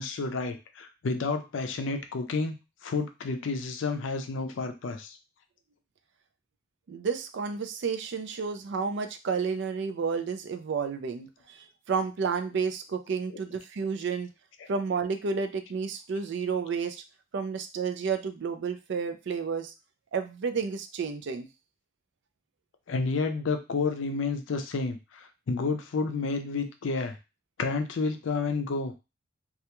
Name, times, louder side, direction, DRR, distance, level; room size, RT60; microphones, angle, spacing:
voice 1, 0.0-2.6 2.8-5.2 22.9-27.2 27.6-29.0, left 4 dB, 70° left, 7 dB, 0.4 m, -30 dB
voice 2, 6.9-14.3 14.7-17.0 17.3-19.7 20.1-21.5, right 5 dB, 60° right, 8 dB, 0.4 m, -31 dB
2.4 x 2.2 x 2.9 m, 0.27 s
head